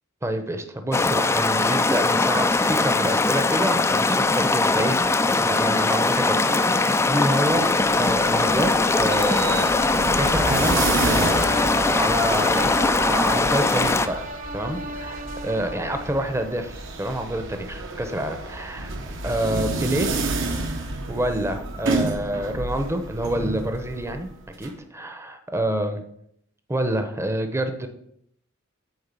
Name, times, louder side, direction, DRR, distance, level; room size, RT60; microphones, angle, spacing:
voice 1, 0.2-7.7 8.0-9.7 10.2-14.3 14.5-18.9 19.2-20.1 21.1-24.3 24.6-26.0 26.7-27.9, right 1 dB, 15° right, 7 dB, 0.8 m, -27 dB
sound 1, 0.9-14.1, left 3 dB, 15° left, 0.3 m, -21 dB
sound 2, 5.6-16.5, equal, 40° right, 0.8 m, -35 dB
sound 3, 7.6-24.7, right 3 dB, 65° right, 1.1 m, -31 dB
9.0 x 3.8 x 6.9 m, 0.73 s
head